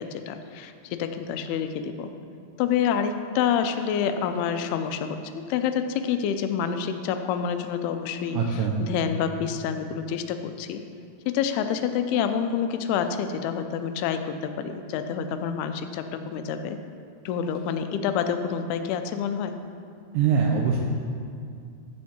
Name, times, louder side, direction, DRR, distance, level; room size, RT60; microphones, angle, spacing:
voice 1, 0.0-2.1 2.6-8.4 8.8-10.8 11.3-16.8 17.3-19.5, left 7 dB, 85° left, 8 dB, 2.5 m, -27 dB
voice 2, 8.3-8.8 20.1-20.8, right 6 dB, 90° right, 0 dB, 2.0 m, -23 dB
15.0 x 7.4 x 2.8 m, 2.3 s
omnidirectional pair, 4.6 m